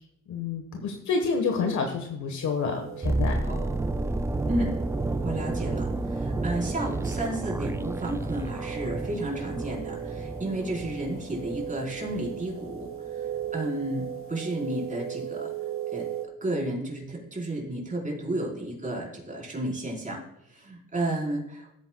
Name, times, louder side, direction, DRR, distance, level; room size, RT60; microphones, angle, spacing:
voice 1, 0.3-3.4, left 5 dB, 70° left, 4 dB, 1.3 m, -28 dB
sound 1, 2.4-16.3, right 9 dB, 45° right, 1.1 m, -38 dB
sound 2, 3.0-13.0 13.3-13.5, right 2 dB, 10° right, 0.3 m, -31 dB
voice 2, 3.5-3.8 4.5-4.7 5.2-12.9 13.2-13.3 13.5-15.5 15.9-16.1 16.4-20.2 20.5-21.7, right 1 dB, 25° right, -2 dB, 4.0 m, -32 dB
16.0 x 9.0 x 2.3 m, 0.83 s
cardioid pair, 90°, 30 cm